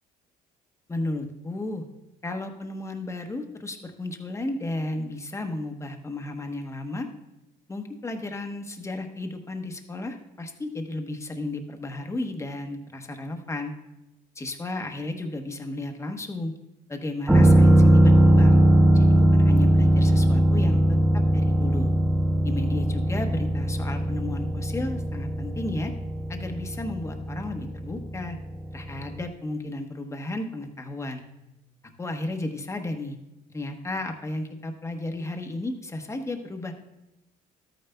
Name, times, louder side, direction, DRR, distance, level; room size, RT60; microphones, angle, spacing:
voice 1, 0.9-1.8 2.2-7.1 7.7-13.7 14.3-16.5 16.9-18.6 18.9-21.0 21.3-21.9 22.4-25.9 26.3-28.4 28.7-31.2 32.0-33.2 33.5-36.7, left 2 dB, 15° left, 5 dB, 1.0 m, -33 dB
sound 1, 17.3-28.8 29.2-29.3, right 1 dB, 5° right, 0.6 m, -20 dB
12.5 x 8.9 x 2.3 m, 0.92 s
cardioid pair, 110°, 17 cm